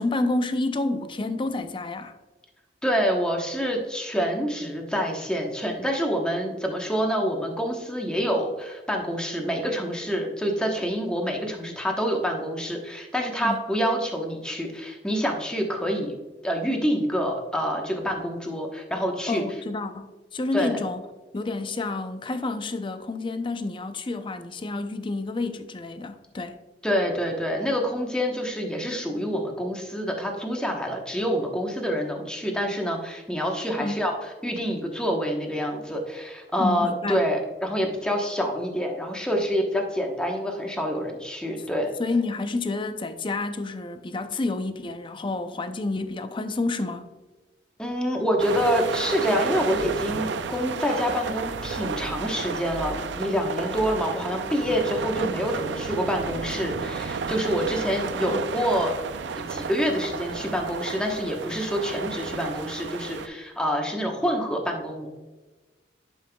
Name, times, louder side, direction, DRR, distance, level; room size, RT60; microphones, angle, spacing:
voice 1, 0.0-2.1 13.4-13.7 19.3-21.0 21.3-26.6 33.8-34.0 36.6-37.2 42.0-47.1 58.3-58.4, left 2 dB, 30° left, 0.5 m, -29 dB
voice 2, 2.8-16.1 16.4-19.4 20.5-20.8 26.8-34.1 34.4-41.9 47.8-58.9 59.4-65.1, equal, 5° left, 1.0 m, -27 dB
sound 1, 48.4-63.3, right 5 dB, 80° right, 0.5 m, -32 dB
11.0 x 5.5 x 2.3 m
head